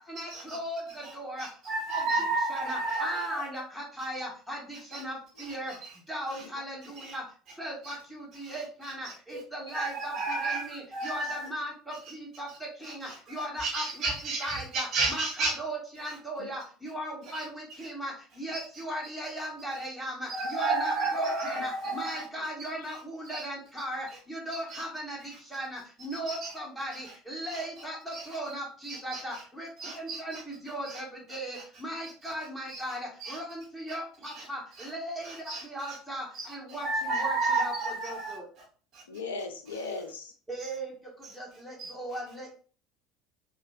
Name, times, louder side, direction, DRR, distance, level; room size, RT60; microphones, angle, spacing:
voice 1, 0.1-1.5 2.5-5.7 6.1-7.2 7.6-12.5 12.8-14.1 14.4-25.2 25.5-29.7 29.9-35.3 35.6-37.7 38.0-38.5 40.5-40.9 41.3-42.5, equal, ahead, 1.5 m, -38 dB
voice 2, 1.0-3.5 4.9-5.0 5.4-5.9 6.3-6.4 7.0-7.1 7.8-7.9 8.4-9.4 9.7-11.5 12.8-15.5 16.0-16.2 17.2-17.4 18.5-18.6 19.7-19.8 20.3-22.2 23.3-23.4 24.7-24.8 26.1-26.5 27.0-27.1 27.5-27.6 28.1-28.3 28.8-29.4 29.8-30.4 30.8-31.0 31.5-31.6 32.7-32.8 33.2-33.4 34.2-34.4 34.7-34.9 35.2-36.0 36.3-38.4 38.9-39.0 41.8-41.9, right 3 dB, 50° right, 0.9 m, -33 dB
voice 3, 21.6-22.0 22.3-22.4 39.1-40.3, left 4 dB, 80° left, 0.4 m, -39 dB
3.8 x 2.4 x 2.4 m
figure-of-eight pair, 65°, 0 cm